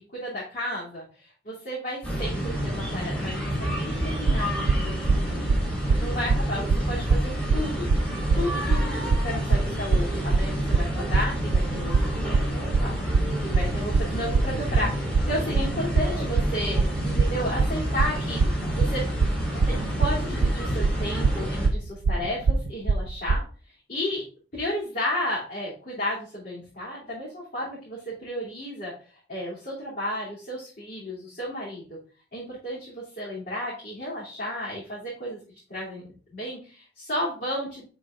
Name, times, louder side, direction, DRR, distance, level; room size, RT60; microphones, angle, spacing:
voice 1, 0.1-5.0 5.3-5.6 6.0-7.9 8.3-13.0 13.2-19.3 19.7-23.4 23.9-24.2 24.5-28.9 29.3-32.0 32.3-35.4 35.7-36.1 36.3-37.9, left 1 dB, 50° left, -8 dB, 3.0 m, -33 dB
sound 1, 2.0-21.7, equal, 5° left, 3.5 m, -29 dB
sound 2, 4.3-23.4, right 4 dB, 70° right, 0.4 m, -23 dB
11.0 x 4.8 x 2.5 m, 0.38 s
head